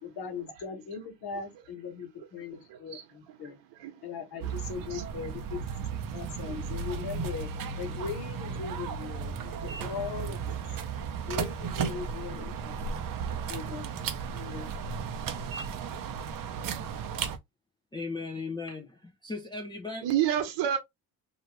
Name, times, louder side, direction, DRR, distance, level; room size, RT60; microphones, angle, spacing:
voice 1, 0.0-3.6 4.0-5.6 6.1-7.5 7.8-10.6 11.3-12.9 13.5-13.9 14.3-14.7, left 6 dB, 60° left, 1.4 m, -39 dB
voice 2, 2.7-3.0 3.8-3.9 4.9-5.0 6.5-6.6 20.0-20.8, right 10 dB, 75° right, 1.1 m, -28 dB
sound 1, 4.4-17.4, right 6 dB, 50° right, 0.7 m, -35 dB
voice 3, 17.9-20.1, left 3 dB, 10° left, 0.5 m, -37 dB
2.8 x 2.5 x 3.0 m
cardioid pair, 90°, 44 cm